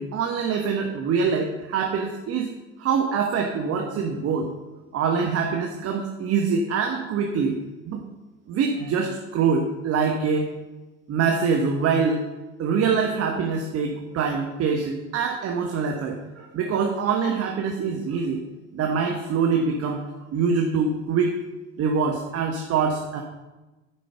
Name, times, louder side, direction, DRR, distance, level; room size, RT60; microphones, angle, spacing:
voice 1, 0.0-2.5 2.8-4.5 4.9-7.6 7.9-8.0 8.5-10.5 11.1-12.2 12.6-18.4 18.7-20.0 20.3-21.3 21.8-23.2, right 5 dB, 40° right, 2 dB, 1.2 m, -24 dB
9.9 x 5.2 x 7.0 m, 1.1 s
figure-of-eight pair, 65°, 38 cm